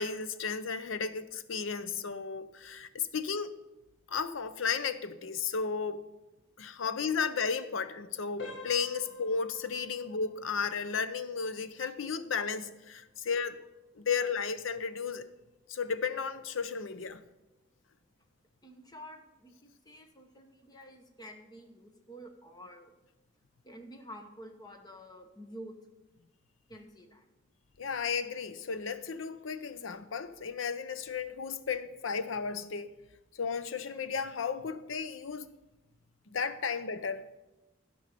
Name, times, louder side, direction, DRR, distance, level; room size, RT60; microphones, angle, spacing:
voice 1, 0.0-3.5 4.1-6.0 6.6-13.6 14.0-15.3 15.7-17.2 27.8-32.9 33.4-35.5 36.3-37.2, left 5 dB, 90° left, 0.7 m, -34 dB
sound 1, 8.4-19.1 19.4-19.6 20.2-20.3 20.8-21.0, left 3 dB, 65° left, 1.3 m, -53 dB
voice 2, 18.6-22.9 23.6-25.8 26.7-27.3, equal, 20° left, 1.0 m, -49 dB
13.0 x 5.3 x 6.8 m
head